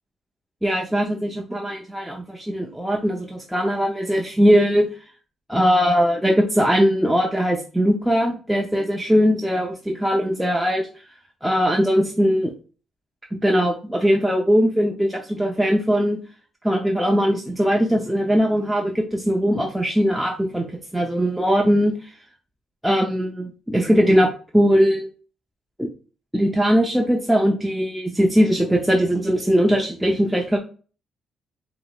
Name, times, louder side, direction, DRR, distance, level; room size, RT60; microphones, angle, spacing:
voice 1, 0.6-4.9 5.5-10.9 11.4-12.5 13.4-16.2 16.6-20.7 20.9-22.1 22.8-25.1 25.8-25.9 26.3-30.6, equal, ahead, 0 dB, 0.6 m, -20 dB
4.9 x 2.9 x 2.3 m, 0.37 s
cardioid pair, 90°, 0 cm